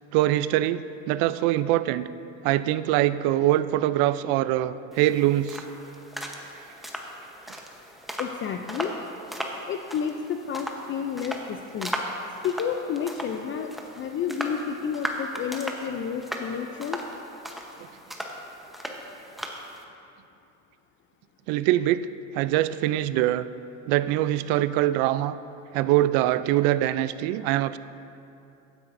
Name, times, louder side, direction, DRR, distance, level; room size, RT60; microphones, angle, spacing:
voice 1, 0.1-2.1 2.4-5.6 21.5-22.1 22.3-23.5 23.9-25.4 25.7-27.8, right 14 dB, 70° right, 15 dB, 0.5 m, -23 dB
sound 1, 4.9-19.8, equal, ahead, 0.9 m, -37 dB
voice 2, 8.2-9.0 9.7-11.9 12.4-17.0, left 7 dB, 35° left, 5 dB, 0.4 m, -31 dB
15.0 x 9.8 x 2.6 m, 2.7 s
supercardioid pair, 110°, 37 cm